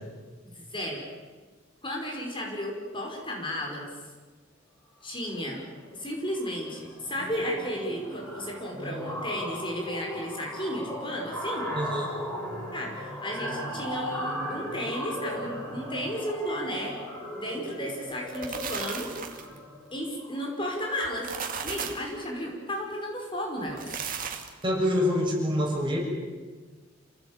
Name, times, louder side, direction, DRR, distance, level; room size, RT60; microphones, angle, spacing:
voice 1, 0.5-1.0 1.8-3.9 5.0-5.6 5.9-11.7 12.7-16.9 17.3-19.1 19.9-21.3 21.6-24.0, equal, 25° left, -1 dB, 5.2 m, -33 dB
sound 1, 5.1-5.4 5.7-6.0 6.2-21.1, equal, 10° left, 7.1 m, -37 dB
voice 2, 11.7-12.1 24.6-26.0, left 1 dB, 25° right, -1 dB, 6.7 m, -26 dB
sound 2, 18.1-19.6 21.0-22.1 23.6-24.7, right 6 dB, 45° right, 2.4 m, -35 dB
28.0 x 18.0 x 8.9 m, 1.4 s
head